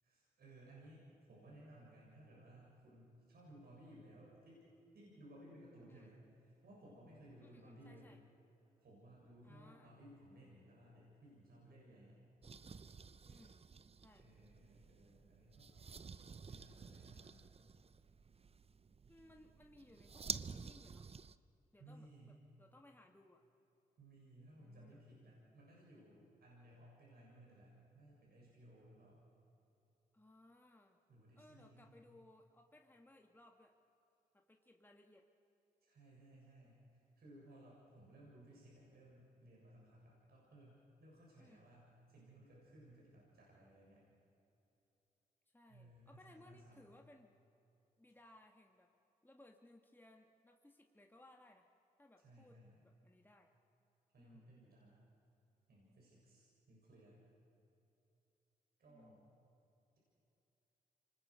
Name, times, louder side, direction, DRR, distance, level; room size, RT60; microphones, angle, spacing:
voice 1, 0.0-4.7 4.9-8.2 8.8-12.2 14.2-15.7 16.4-17.4 21.8-22.4 24.0-29.2 31.1-31.9 35.8-44.0 45.7-46.9 52.2-52.8 54.1-55.0 55.7-57.2 58.8-59.2, right 1 dB, 65° right, -4 dB, 7.1 m, -60 dB
voice 2, 7.4-8.2 9.4-9.9 13.3-13.7 14.0-14.2 19.1-21.1 21.7-23.4 24.5-25.0 30.1-31.0 31.4-33.7 34.3-35.3 41.4-41.6 45.5-47.3 48.0-48.9 49.2-51.6 52.0-52.6 52.8-53.5 54.2-54.4 58.9-59.3, left 1 dB, 10° left, 2 dB, 1.9 m, -64 dB
sound 1, 12.4-21.4, right 5 dB, 35° right, 0.7 m, -51 dB
26.0 x 20.5 x 6.5 m, 2.9 s
supercardioid pair, 45°, 17 cm